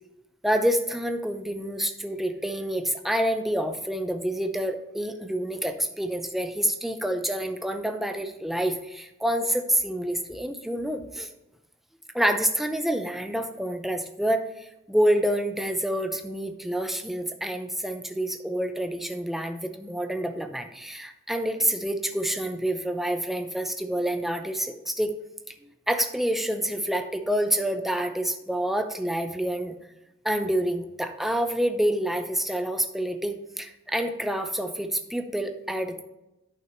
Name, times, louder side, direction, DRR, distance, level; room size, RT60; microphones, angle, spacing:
voice 1, 0.4-11.3 12.1-25.1 25.9-29.7 30.2-36.0, right 1 dB, ahead, 6 dB, 0.5 m, -27 dB
10.5 x 5.8 x 3.1 m, 0.94 s
head